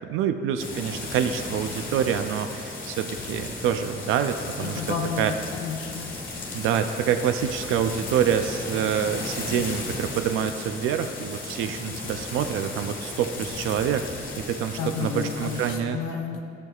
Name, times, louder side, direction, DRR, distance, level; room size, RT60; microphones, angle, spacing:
voice 1, 0.0-4.8 5.2-5.3 6.5-14.0 14.4-16.0, right 8 dB, 90° right, 8 dB, 0.4 m, -26 dB
sound 1, 0.6-15.8, left 3 dB, 45° left, 1.6 m, -35 dB
voice 2, 4.6-6.1 14.8-16.4, left 6 dB, 90° left, 2 dB, 0.7 m, -31 dB
12.0 x 7.7 x 2.4 m, 2.4 s
cardioid pair, 90°, 20 cm